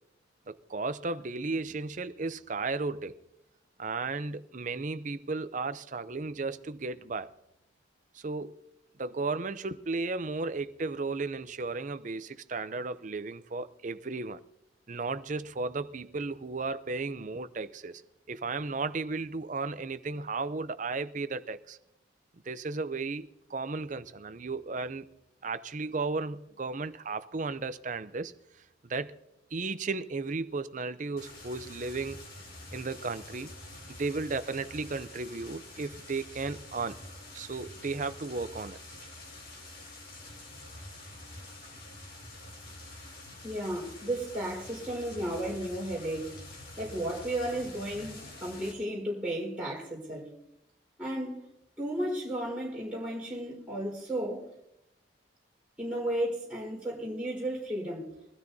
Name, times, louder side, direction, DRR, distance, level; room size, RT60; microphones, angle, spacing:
voice 1, 0.5-3.2 3.8-7.3 8.1-8.6 9.0-14.4 14.9-18.0 18.3-21.8 22.5-25.1 25.4-28.3 28.9-29.2 29.5-32.2 32.7-33.5 33.9-37.0 37.3-38.8, right 3 dB, 40° right, 0.6 m, -34 dB
sound 1, 31.2-48.7, left 2 dB, 50° left, 3.3 m, -47 dB
voice 2, 43.4-46.4 46.8-50.3 51.0-51.4 51.8-54.5 55.8-58.1, right 1 dB, 5° right, 4.5 m, -34 dB
23.5 x 13.5 x 2.7 m
head